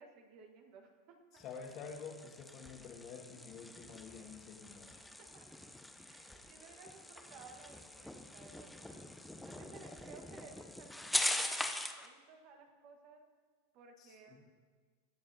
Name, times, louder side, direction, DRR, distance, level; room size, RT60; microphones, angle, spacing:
voice 1, 0.0-1.4 5.3-5.4 6.0-9.0 9.4-13.2 13.7-14.5, right 4 dB, 55° right, 3 dB, 1.5 m, -58 dB
voice 2, 1.3-5.0 14.0-14.4, left 5 dB, 45° left, 2 dB, 1.7 m, -49 dB
sound 1, 1.4-12.1, left 1 dB, 5° left, 0.7 m, -42 dB
20.5 x 6.9 x 2.8 m, 1.5 s
hypercardioid pair, 110°, 0 cm